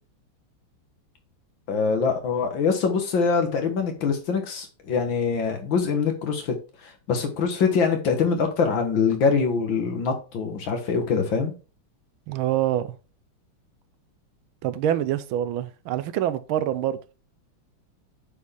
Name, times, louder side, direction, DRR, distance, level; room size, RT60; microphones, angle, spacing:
voice 1, 1.7-6.5 6.8-11.5, left 5 dB, 65° left, 2.1 m, -24 dB
voice 2, 12.3-12.9 14.6-17.0, right 11 dB, 80° right, 1.4 m, -25 dB
8.4 x 4.5 x 3.5 m
omnidirectional pair, 2.3 m